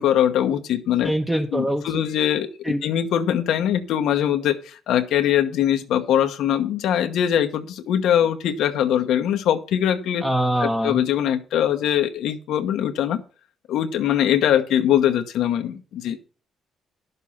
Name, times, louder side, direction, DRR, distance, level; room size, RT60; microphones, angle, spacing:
voice 1, 0.0-1.1 1.5-10.2 10.6-13.2 13.7-16.2, left 10 dB, 80° left, 6 dB, 1.1 m, -22 dB
voice 2, 1.0-1.8 2.6-2.8 10.2-11.0, right 1 dB, 10° right, 3 dB, 1.2 m, -23 dB
11.0 x 6.8 x 5.7 m, 0.37 s
cardioid pair, 90°, 0 cm